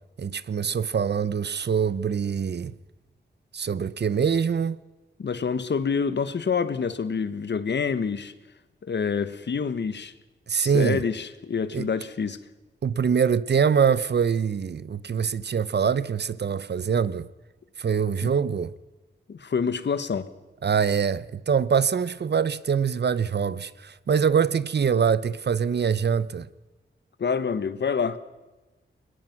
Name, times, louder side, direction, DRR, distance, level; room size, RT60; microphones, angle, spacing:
voice 1, 0.2-2.7 3.5-4.8 10.5-11.0 11.7-11.9 12.8-17.3 17.8-18.7 20.6-26.5, right 6 dB, 60° right, 0.8 m, -24 dB
voice 2, 5.2-8.3 8.8-10.1 10.6-12.4 18.2-18.3 19.3-20.3 27.2-28.2, left 6 dB, 65° left, 1.3 m, -27 dB
22.0 x 20.5 x 6.0 m
wide cardioid pair, 110°, 19 cm